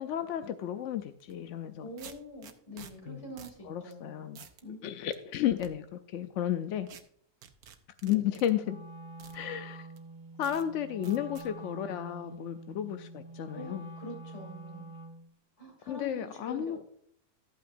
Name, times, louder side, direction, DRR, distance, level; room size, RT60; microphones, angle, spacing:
voice 1, 0.0-1.9 3.1-3.2 3.6-4.4 4.8-6.9 8.0-8.8 9.3-9.9 10.4-13.9 15.9-16.8, left 10 dB, 65° left, 9 dB, 0.8 m, -33 dB
sound 1, 1.2-1.3 2.0-2.9 3.4-3.6 3.9-4.0 4.3-4.6 5.1-5.7 6.9-7.0 7.4-8.5 9.2-9.4 10.0-10.1 10.4-10.7 11.0-11.5, right 8 dB, 70° right, 1.3 m, -50 dB
voice 2, 1.8-4.2 4.6-4.9 13.5-14.9 15.6-16.8, left 1 dB, 45° left, 1 dB, 3.2 m, -44 dB
Wind instrument woodwind instrument, 8.6-15.3, right 2 dB, 35° right, 2.7 m, -46 dB
13.0 x 8.5 x 2.6 m, 0.64 s
omnidirectional pair, 1.7 m